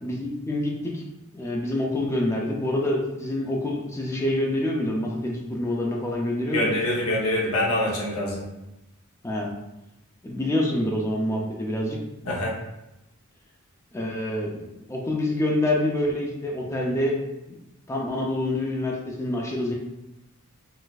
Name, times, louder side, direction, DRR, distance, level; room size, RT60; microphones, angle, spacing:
voice 1, 0.0-1.0 1.3-6.7 9.2-9.5 10.2-12.0 13.9-17.2 17.5-17.6 17.9-19.7, left 1 dB, 15° left, -1 dB, 0.4 m, -26 dB
voice 2, 6.5-8.4 12.3-12.5, left 1 dB, 75° left, -3 dB, 0.7 m, -25 dB
3.9 x 2.5 x 2.3 m, 0.93 s
head